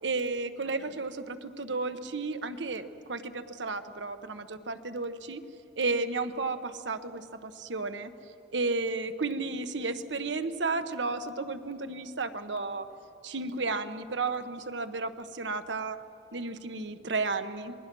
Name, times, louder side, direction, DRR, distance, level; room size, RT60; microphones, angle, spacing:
voice 1, 0.0-5.4 5.8-8.1 8.5-12.9 13.2-16.0 16.3-17.7, right 3 dB, 90° right, 9 dB, 1.1 m, -33 dB
27.0 x 20.5 x 6.2 m, 2.7 s
head